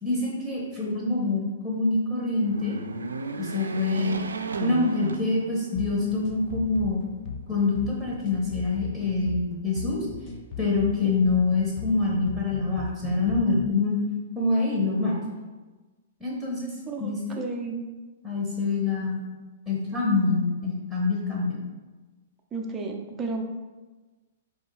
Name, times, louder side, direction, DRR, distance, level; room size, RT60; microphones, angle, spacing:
voice 1, 0.0-2.8 3.4-4.1 4.6-7.1 7.5-10.1 10.6-14.0 14.3-15.2 16.2-16.7 17.0-17.4 18.2-19.2 19.7-21.6, left 3 dB, 5° left, -6 dB, 1.0 m, -25 dB
sound 1, 2.3-5.9 6.4-6.5 7.6-8.4, right 4 dB, 85° right, 0.3 m, -34 dB
sound 2, 5.7-13.8, left 4 dB, 40° left, 0.4 m, -38 dB
voice 2, 11.0-11.4 16.9-17.9 22.5-23.4, right 4 dB, 20° right, 2 dB, 0.6 m, -33 dB
4.3 x 3.3 x 3.3 m, 1.2 s
hypercardioid pair, 120°, 0 cm